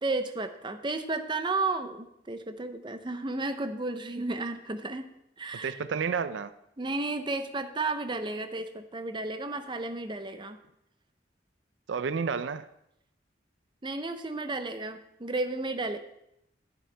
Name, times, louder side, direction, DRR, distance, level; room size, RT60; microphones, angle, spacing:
voice 1, 0.0-5.1 5.4-5.8 6.8-10.6 13.8-16.0, right 3 dB, 25° right, 8 dB, 0.6 m, -33 dB
voice 2, 5.6-6.5 11.9-12.7, right 6 dB, 80° right, 13 dB, 0.4 m, -30 dB
11.0 x 10.5 x 3.4 m, 0.80 s
head